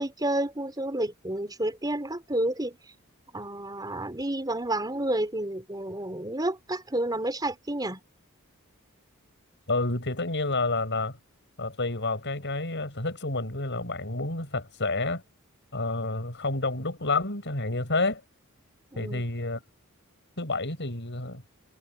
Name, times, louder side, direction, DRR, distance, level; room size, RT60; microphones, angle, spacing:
voice 1, 0.0-2.8 3.3-8.0 18.9-19.2, right 1 dB, 20° right, 4.2 m, -30 dB
voice 2, 9.7-11.2 11.6-15.2 15.7-18.2 19.0-19.6 20.4-21.4, left 2 dB, 55° left, 7.0 m, -29 dB
head